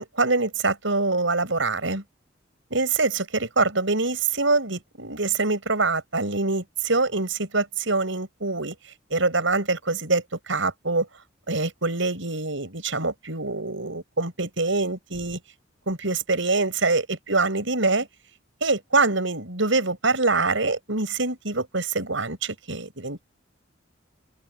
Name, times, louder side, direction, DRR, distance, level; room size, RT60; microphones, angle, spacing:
voice 1, 0.0-2.0 2.7-8.8 9.1-11.1 11.5-15.4 15.9-18.1 18.6-23.3, right 3 dB, 75° right, 6.5 m, -25 dB
open air
head